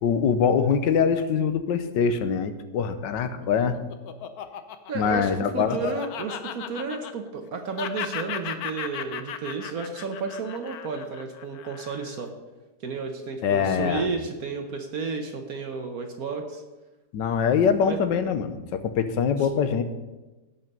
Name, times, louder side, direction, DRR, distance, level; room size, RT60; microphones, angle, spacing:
voice 1, 0.0-3.8 4.9-5.8 13.4-14.1 17.1-19.8, left 6 dB, 85° left, 10 dB, 1.5 m, -23 dB
Laughter, 3.2-7.5 7.8-12.2, left 8 dB, 65° left, 1.1 m, -36 dB
voice 2, 4.9-12.3 12.8-16.6 17.8-18.0 19.4-19.5, right 4 dB, 60° right, 5 dB, 1.3 m, -32 dB
16.5 x 5.7 x 5.4 m, 1.1 s
omnidirectional pair, 1.9 m